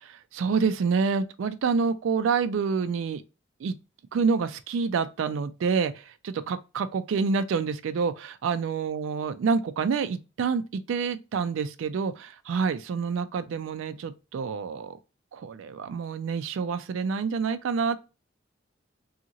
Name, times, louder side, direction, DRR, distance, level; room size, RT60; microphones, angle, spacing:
voice 1, 0.0-3.2 3.6-3.7 4.1-15.0 15.3-18.0, right 5 dB, 75° right, 0.3 m, -27 dB
2.8 x 2.8 x 2.5 m
head